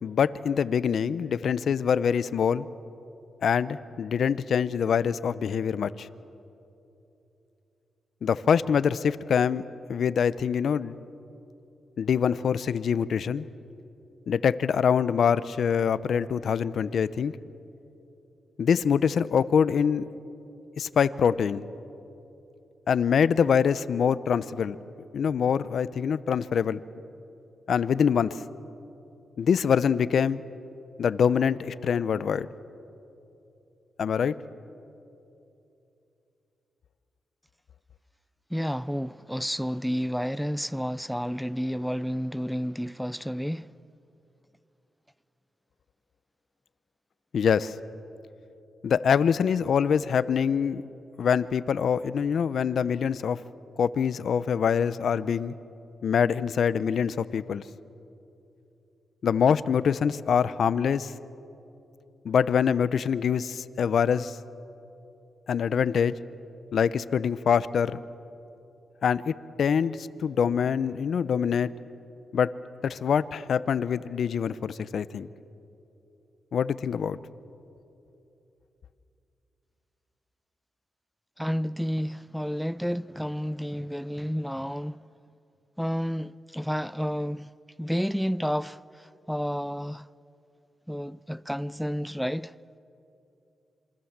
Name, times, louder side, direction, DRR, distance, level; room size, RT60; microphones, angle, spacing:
voice 1, 0.0-2.7 3.4-6.1 8.2-9.6 9.9-11.0 12.0-13.5 14.3-17.3 18.6-20.1 20.8-21.6 22.9-24.8 25.1-26.8 27.7-28.4 29.4-30.4 31.0-32.5 34.0-34.3 47.3-47.7 48.8-50.8 51.2-53.4 53.8-55.5 56.0-57.6 59.2-61.1 62.2-64.4 65.5-66.1 66.7-68.0 69.0-71.7 72.3-72.5 72.8-75.3 76.5-77.2, left 7 dB, 70° left, 0.7 m, -24 dB
voice 2, 38.5-43.7 81.4-85.0 85.8-87.5 87.8-90.1 90.9-92.5, equal, ahead, 0.5 m, -30 dB
27.0 x 24.5 x 7.4 m
cardioid pair, 75°, 0 cm